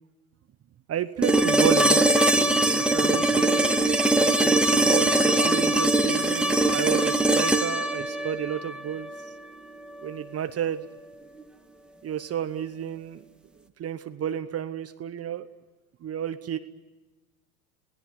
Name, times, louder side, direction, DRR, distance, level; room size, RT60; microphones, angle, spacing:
voice 1, 0.9-3.8 4.1-9.1 10.0-10.9 12.0-13.2 13.8-15.5 16.0-16.6, right 9 dB, 35° right, 11 dB, 1.1 m, -32 dB
sound 1, 1.2-9.3 11.4-11.5, right 2 dB, ahead, 1.8 m, -22 dB
27.5 x 18.0 x 9.6 m, 1.2 s
hypercardioid pair, 95°, 44 cm